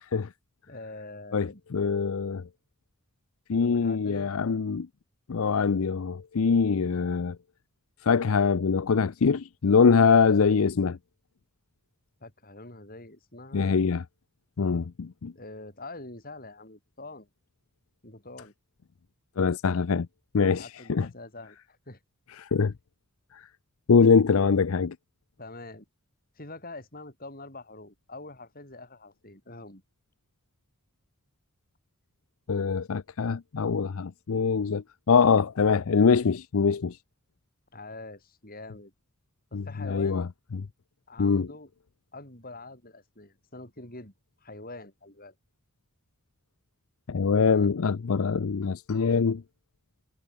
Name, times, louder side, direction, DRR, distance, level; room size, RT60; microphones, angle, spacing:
voice 1, 0.7-1.6 3.6-4.3 12.2-13.8 15.3-17.3 18.0-18.5 20.5-22.0 25.4-25.9 26.4-29.8 37.7-38.9 39.5-40.3 41.1-41.7 42.1-44.1 44.4-45.3 47.5-47.7, left 2 dB, 40° left, 7.7 m, -44 dB
voice 2, 1.3-2.4 3.5-4.9 5.3-7.4 8.0-11.0 13.5-14.0 14.6-15.3 19.4-20.1 20.3-21.1 22.4-22.7 23.9-24.9 32.5-37.0 39.5-40.3 40.5-40.6 41.2-41.5 47.1-49.4, left 5 dB, 70° left, 0.5 m, -23 dB
head